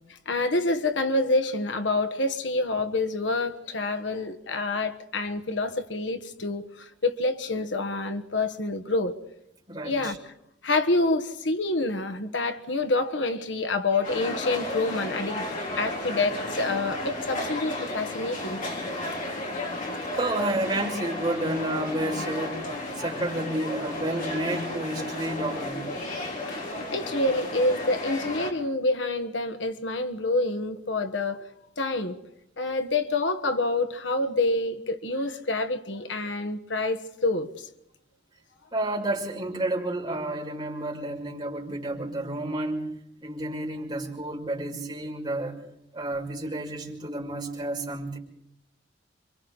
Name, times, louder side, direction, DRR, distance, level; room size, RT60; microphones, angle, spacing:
voice 1, 0.3-9.2 9.8-10.3 10.6-18.6 19.3-19.4 26.5-26.6 26.9-31.5 31.8-32.2 32.6-37.7, left 2 dB, 75° left, 1.4 m, -27 dB
sound 1, 14.0-28.5, left 1 dB, 45° left, 4.7 m, -33 dB
voice 2, 20.1-22.6 23.0-25.9 38.7-42.8 43.2-45.6 45.9-48.2, right 1 dB, 25° right, 5.9 m, -30 dB
28.5 x 25.5 x 4.1 m
head